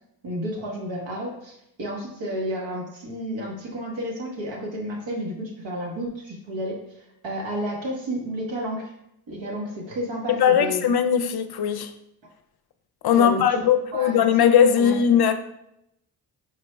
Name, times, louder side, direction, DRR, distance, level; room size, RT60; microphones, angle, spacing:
voice 1, 0.2-1.5 1.8-6.8 7.2-8.9 9.3-10.9 13.1-13.6 13.9-14.2 14.8-15.0, equal, 85° right, 1.2 m, -31 dB
voice 2, 10.3-11.9 13.0-15.3, left 8 dB, 60° left, 0.5 m, -19 dB
4.4 x 2.1 x 4.5 m
cardioid pair, 65°, 43 cm